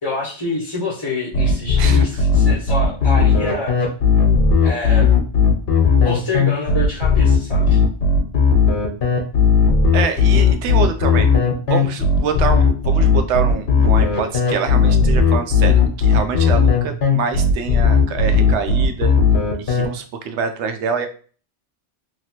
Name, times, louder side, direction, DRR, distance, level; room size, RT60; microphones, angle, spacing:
voice 1, 0.0-3.7 4.6-5.1 6.0-7.8, left 2 dB, 25° left, -5 dB, 0.9 m, -26 dB
sound 1, 1.3-19.8, left 5 dB, 65° left, 1.0 m, -15 dB
voice 2, 9.9-11.3 11.7-19.1 19.6-21.1, right 6 dB, 80° right, 7 dB, 0.9 m, -25 dB
3.0 x 2.8 x 2.8 m, 0.40 s
omnidirectional pair, 1.2 m